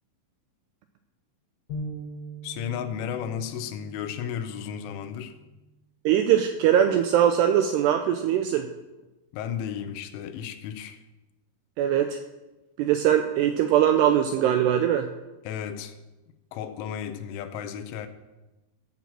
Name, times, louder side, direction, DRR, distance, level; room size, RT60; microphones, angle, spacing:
sound 1, 1.7-5.2, right 1 dB, 30° left, 3.9 m, -41 dB
voice 1, 2.4-5.4 9.3-11.0 15.4-16.0 16.5-18.1, left 8 dB, 85° left, 3.3 m, -34 dB
voice 2, 6.1-8.7 11.8-12.2 12.8-15.1, right 10 dB, 85° right, 2.4 m, -21 dB
15.5 x 6.0 x 7.4 m
omnidirectional pair, 5.5 m